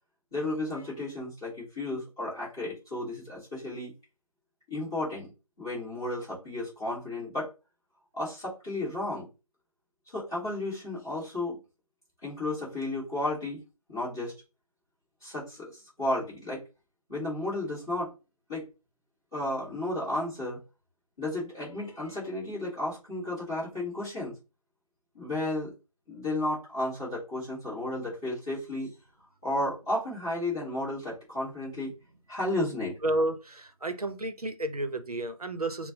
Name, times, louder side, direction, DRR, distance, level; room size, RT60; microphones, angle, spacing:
voice 1, 0.3-3.9 4.7-5.3 5.6-7.5 8.2-9.3 10.1-11.6 12.2-13.6 13.9-14.3 15.2-16.6 17.1-18.1 18.5-18.7 19.3-20.6 21.2-24.3 25.1-25.7 26.1-28.9 29.4-31.9 32.3-32.9, left 1 dB, 10° left, 0.9 m, -33 dB
voice 2, 33.0-35.9, right 1 dB, 85° right, 0.7 m, -31 dB
4.1 x 2.1 x 2.7 m
figure-of-eight pair, 170°, 19 cm